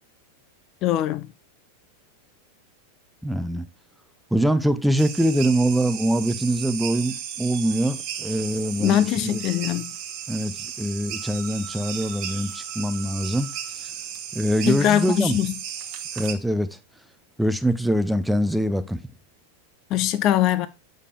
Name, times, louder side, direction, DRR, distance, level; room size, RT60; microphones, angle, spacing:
voice 1, 0.8-1.3 8.8-9.9 14.7-15.5 19.9-20.7, left 12 dB, 35° left, 0.6 m, -22 dB
voice 2, 3.2-3.7 4.3-9.4 10.3-13.5 14.3-15.4 16.1-16.8 17.4-19.0, right 1 dB, ahead, 0.7 m, -23 dB
sound 1, 5.0-16.3, right 9 dB, 40° right, 1.3 m, -35 dB
8.3 x 5.3 x 3.4 m
figure-of-eight pair, 90°, 0 cm